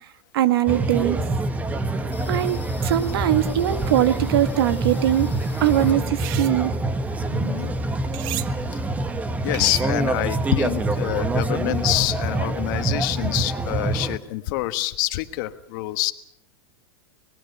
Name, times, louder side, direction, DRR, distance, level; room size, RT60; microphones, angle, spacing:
voice 1, 0.3-1.2 2.3-5.3 5.6-6.7, right 12 dB, 70° right, 11 dB, 1.7 m, -21 dB
sound 1, 0.7-14.2, right 2 dB, 10° right, 1.2 m, -26 dB
sound 2, 2.1-6.5 6.8-8.2 8.5-8.6 8.8-9.5, left 3 dB, 15° left, 7.1 m, -44 dB
sound 3, 6.0-6.6 8.1-8.5 9.5-10.1, right 15 dB, 45° right, 0.9 m, -34 dB
voice 2, 7.3-7.7 8.5-8.8 9.4-16.1, left 18 dB, 55° left, 9 dB, 1.4 m, -26 dB
25.0 x 19.5 x 6.8 m, 0.71 s
supercardioid pair, 135°, 13 cm